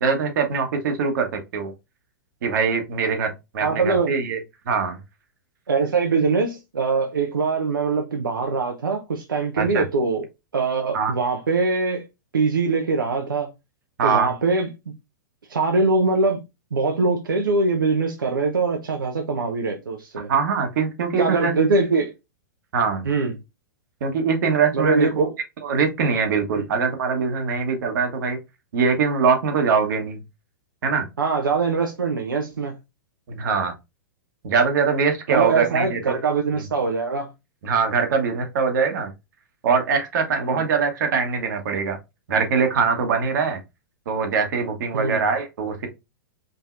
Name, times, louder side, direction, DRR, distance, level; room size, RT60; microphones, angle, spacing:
voice 1, 0.0-1.7 2.4-4.4 4.6-5.0 9.6-9.8 10.9-11.1 14.0-14.3 20.3-21.5 22.7-23.1 24.0-25.2 25.6-28.4 28.7-30.2 30.8-31.0 33.3-33.7 34.4-36.1 36.6-36.7 37.6-39.1 39.6-42.0 42.3-43.6 44.0-45.9, right 5 dB, 65° right, 1.4 m, -22 dB
voice 2, 3.6-4.1 5.7-10.3 10.5-12.0 12.3-13.5 14.0-14.7 15.5-16.4 16.7-20.3 21.2-22.1 23.0-23.3 24.7-25.3 26.6-26.7 31.2-32.8 35.3-37.3 40.4-40.6 44.9-45.2, right 4 dB, 90° right, 0.7 m, -22 dB
5.4 x 2.8 x 2.5 m
hypercardioid pair, 115°, 11 cm